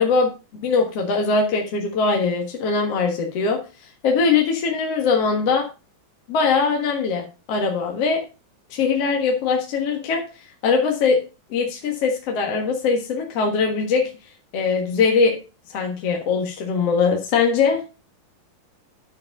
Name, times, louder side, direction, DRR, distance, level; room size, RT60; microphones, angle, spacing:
voice 1, 0.0-3.6 4.0-5.7 6.3-8.2 8.7-10.2 10.6-11.2 11.5-14.1 14.5-15.4 15.7-17.8, left 5 dB, 50° left, 1 dB, 2.3 m, -21 dB
12.0 x 5.2 x 5.3 m, 0.31 s
omnidirectional pair, 3.9 m